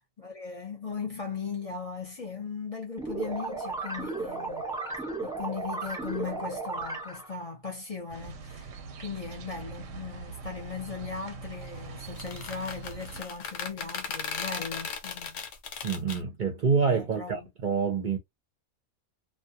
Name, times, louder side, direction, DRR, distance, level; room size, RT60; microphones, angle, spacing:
voice 1, 0.2-4.7 5.2-8.7 9.0-15.4 16.1-16.2 17.0-17.5, left 5 dB, 35° left, 0.8 m, -38 dB
sound 1, 3.0-7.4, right 3 dB, 5° right, 1.1 m, -34 dB
sound 2, 8.1-13.2, right 5 dB, 85° right, 0.9 m, -42 dB
sound 3, 12.1-16.2, left 6 dB, 80° left, 1.0 m, -37 dB
voice 2, 15.8-18.2, right 5 dB, 50° right, 0.6 m, -27 dB
2.3 x 2.2 x 2.8 m
omnidirectional pair, 1.3 m